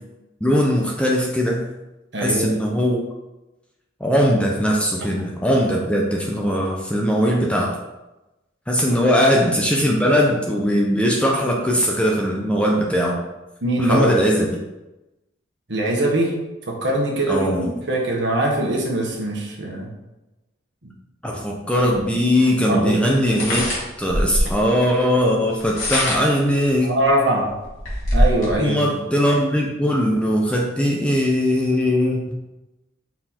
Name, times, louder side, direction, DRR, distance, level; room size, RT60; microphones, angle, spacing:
voice 1, 0.4-1.6 2.2-3.0 4.0-7.8 8.7-13.2 13.8-14.6 17.3-17.7 21.2-23.6 24.0-27.0 28.6-32.3, equal, 5° left, -1 dB, 0.6 m, -20 dB
voice 2, 2.1-2.5 13.6-14.1 15.7-16.3 16.7-19.9 22.4-23.0 26.8-27.5 28.1-28.8, right 1 dB, 60° right, -1 dB, 1.5 m, -22 dB
sound 1, 23.2-24.6 25.5-26.4 27.0-27.1 27.5-28.5, equal, 80° left, 2.3 m, -22 dB
5.8 x 4.5 x 4.4 m, 1.0 s
head